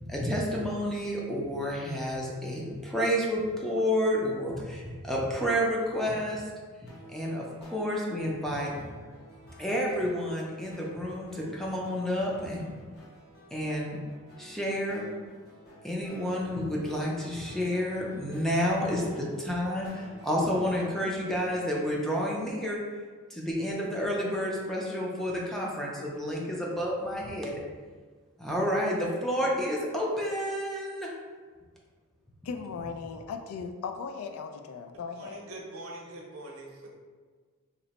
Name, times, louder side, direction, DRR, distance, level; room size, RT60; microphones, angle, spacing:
voice 1, 0.0-6.5 6.8-8.8 9.6-12.7 13.5-14.0 14.4-15.0 15.8-22.8 23.3-27.6 28.4-31.1, equal, ahead, -3 dB, 0.4 m, -30 dB
sound 1, 6.9-22.1, left 1 dB, 50° left, 0.8 m, -51 dB
voice 2, 32.4-35.4, left 5 dB, 75° left, 5 dB, 0.3 m, -37 dB
voice 3, 35.2-36.9, right 1 dB, 75° right, -1 dB, 0.7 m, -43 dB
2.8 x 2.1 x 4.0 m, 1.5 s
head